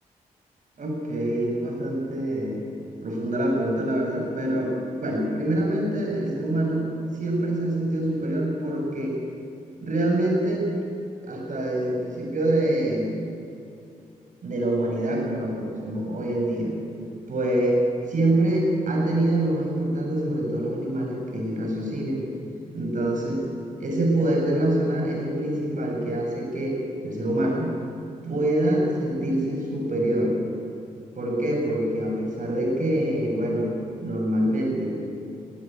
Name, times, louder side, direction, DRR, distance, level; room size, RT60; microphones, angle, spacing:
voice 1, 0.8-2.6 3.0-6.9 7.1-9.2 9.8-10.7 11.2-13.1 14.4-16.8 17.3-17.8 18.1-22.2 22.7-23.4 23.8-27.8 28.2-30.3 31.2-33.7 34.0-35.0, right 1 dB, 60° right, 0 dB, 7.8 m, -25 dB
20.0 x 18.0 x 9.4 m, 2.5 s
cardioid pair, 60°, 15 cm